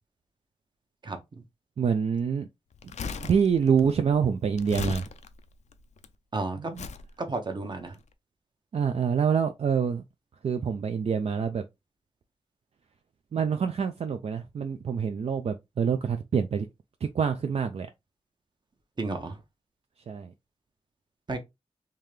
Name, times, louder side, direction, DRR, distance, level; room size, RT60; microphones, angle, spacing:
voice 1, 1.0-1.4 6.3-6.7 7.2-8.0 19.0-19.4 21.3-21.4, right 3 dB, 40° right, 0.8 m, -32 dB
voice 2, 1.8-2.5 3.2-5.1 6.7-6.8 8.7-10.0 10.4-11.6 13.3-16.7 17.1-17.9 20.1-20.3, right 6 dB, 65° right, 0.4 m, -26 dB
Crumpling crinkling, 2.7-6.1 6.8-7.1 7.8-8.0, left 5 dB, 90° left, 0.4 m, -37 dB
3.7 x 2.8 x 3.2 m
wide cardioid pair, 125°, 11 cm